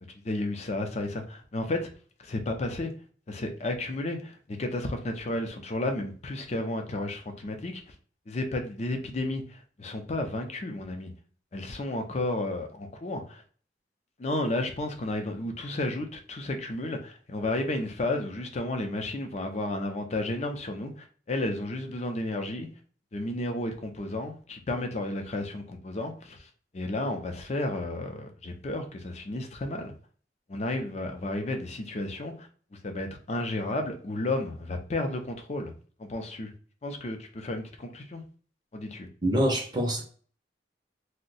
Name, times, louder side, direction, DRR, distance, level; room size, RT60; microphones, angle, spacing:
voice 1, 0.2-1.9 2.2-2.9 3.3-8.0 8.3-11.1 11.5-13.4 14.2-22.7 23.1-29.9 30.5-32.5 32.8-35.7 36.0-36.5 36.8-38.2 38.7-39.1, left 2 dB, 40° left, 5 dB, 0.5 m, -32 dB
voice 2, 39.2-40.0, equal, 25° right, 1 dB, 0.6 m, -25 dB
2.6 x 2.1 x 4.0 m, 0.43 s
head